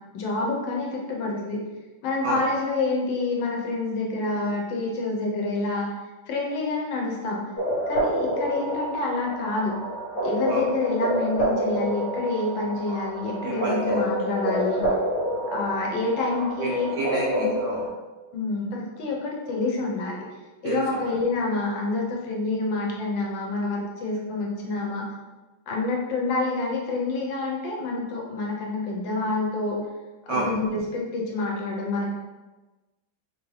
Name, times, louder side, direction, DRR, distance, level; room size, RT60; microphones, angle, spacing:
voice 1, 0.1-1.6 2.0-5.9 6.3-7.4 7.9-9.8 10.2-14.9 15.5-16.9 17.4-17.5 18.3-20.2 20.6-25.1 25.7-29.8 30.3-32.1, left 3 dB, 80° left, -2 dB, 1.5 m, -27 dB
sound 1, 7.6-17.9, equal, 55° left, 1.7 m, -28 dB
voice 2, 13.4-14.0 16.6-17.3 17.6-17.8 20.6-20.8 30.3-30.5, right 3 dB, 75° right, -3 dB, 0.8 m, -29 dB
4.1 x 2.7 x 3.2 m, 1.2 s
omnidirectional pair, 2.1 m